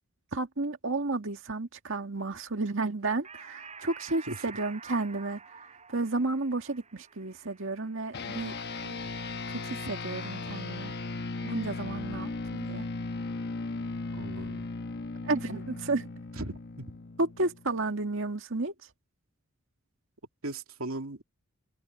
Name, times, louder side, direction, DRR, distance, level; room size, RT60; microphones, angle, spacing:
voice 1, 0.3-5.4 5.9-8.5 8.8-9.0 9.5-10.9 11.4-12.9 15.2-16.1 17.2-18.7, right 2 dB, 65° right, 2.0 m, -32 dB
sound 1, 3.2-10.1, right 5 dB, 30° right, 7.2 m, -49 dB
sound 2, 8.1-17.8, left 3 dB, 50° left, 1.1 m, -37 dB
voice 2, 14.1-14.7 16.4-16.9 20.4-21.2, right 2 dB, 80° right, 2.7 m, -38 dB
head